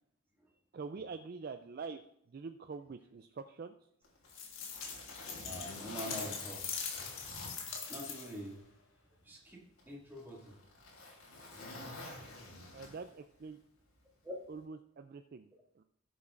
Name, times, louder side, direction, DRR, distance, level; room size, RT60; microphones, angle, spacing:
voice 1, 0.7-2.0 2.3-3.7 12.7-13.6 14.5-15.8, right 4 dB, 45° right, 8 dB, 0.4 m, -45 dB
Zipper (clothing), 4.0-8.5 8.9-9.0 9.8-13.3 14.4-14.6, left 2 dB, 90° left, 3.2 m, -48 dB
sound 1, 4.3-8.5, left 6 dB, 70° left, 1.6 m, -42 dB
voice 2, 5.4-6.7 7.9-8.6 9.2-10.5 14.2-14.3, equal, 10° right, -4 dB, 2.1 m, -45 dB
17.0 x 7.1 x 2.5 m, 0.72 s
head